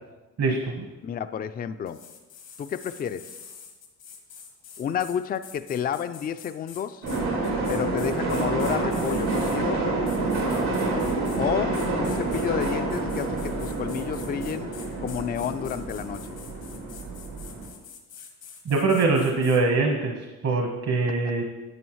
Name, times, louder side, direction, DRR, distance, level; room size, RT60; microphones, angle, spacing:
voice 1, 0.4-0.8 18.6-21.4, right 3 dB, 55° right, 1 dB, 1.2 m, -23 dB
voice 2, 1.0-2.0 2.6-3.3 4.8-7.1 7.7-9.9 11.4-14.7 15.0-16.4 20.5-20.6, left 8 dB, 30° left, 11 dB, 0.4 m, -30 dB
sound 1, 1.9-9.6 10.1-11.4 11.7-19.6, left 7 dB, 85° left, 1.6 m, -46 dB
sound 2, 7.0-17.7, right 2 dB, 90° right, 2.7 m, -28 dB
9.4 x 8.4 x 3.1 m, 1.2 s
cardioid pair, 90°, 30 cm